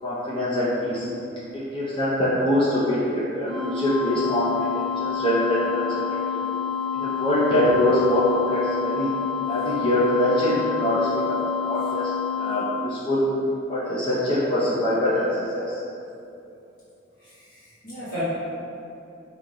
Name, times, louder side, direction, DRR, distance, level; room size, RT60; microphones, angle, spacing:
voice 1, 0.0-1.1 1.5-4.5 4.7-6.0 6.3-6.4 6.9-9.1 9.5-11.4 11.6-12.1 12.4-13.2 13.7-15.2 15.5-15.7, left 1 dB, 25° left, -9 dB, 0.5 m, -23 dB
sound 1, 3.5-12.5, left 7 dB, 55° right, 0.5 m, -28 dB
voice 2, 17.2-18.2, right 1 dB, 45° left, -13 dB, 1.3 m, -36 dB
4.0 x 2.8 x 3.6 m, 2.8 s
head